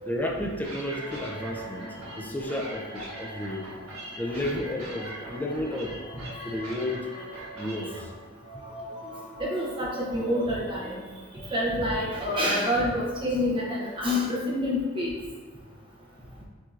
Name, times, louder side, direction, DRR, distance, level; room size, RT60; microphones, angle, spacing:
voice 1, 0.1-3.7 4.2-5.9 6.4-7.1 7.6-8.1, left 1 dB, 10° left, 0 dB, 0.4 m, -32 dB
sound 1, 0.6-8.0, right 1 dB, 85° right, 1.3 m, -42 dB
sound 2, 0.8-10.6, right 1 dB, 45° right, 1.5 m, -44 dB
voice 2, 9.4-11.1 11.3-15.1, left 1 dB, 25° right, -4 dB, 0.7 m, -27 dB
7.4 x 2.7 x 2.4 m, 1.4 s
head